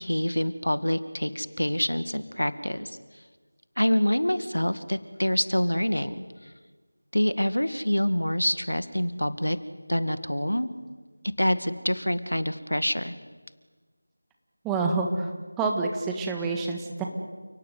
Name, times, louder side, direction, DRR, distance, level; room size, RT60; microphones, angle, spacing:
voice 1, 0.0-3.0 3.8-6.2 7.1-9.6 9.9-10.7 11.4-13.1, equal, 85° left, 12 dB, 2.0 m, -26 dB
voice 2, 14.6-15.3 15.6-17.0, right 3 dB, 5° right, 2 dB, 1.5 m, -27 dB
29.5 x 18.0 x 9.5 m, 1.4 s
figure-of-eight pair, 170°, 0 cm